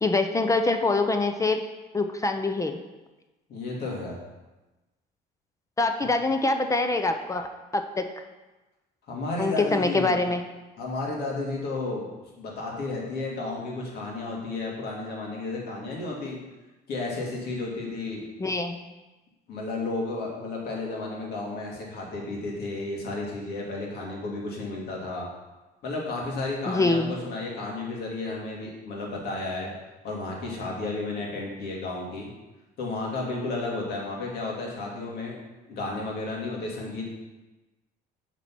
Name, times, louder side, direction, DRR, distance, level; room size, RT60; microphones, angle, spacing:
voice 1, 0.0-1.6 1.9-2.8 5.8-8.1 9.4-10.4 18.4-18.8 26.7-27.1, left 3 dB, 20° left, 6 dB, 0.6 m, -24 dB
voice 2, 3.5-4.2 9.1-10.2 10.8-12.1 12.4-16.4 16.9-18.3 19.5-25.3 25.8-29.7 30.0-32.3 32.8-35.4 35.7-37.1, left 2 dB, 70° left, -2 dB, 2.3 m, -32 dB
7.6 x 4.2 x 6.0 m, 1.1 s
cardioid pair, 110°, 17 cm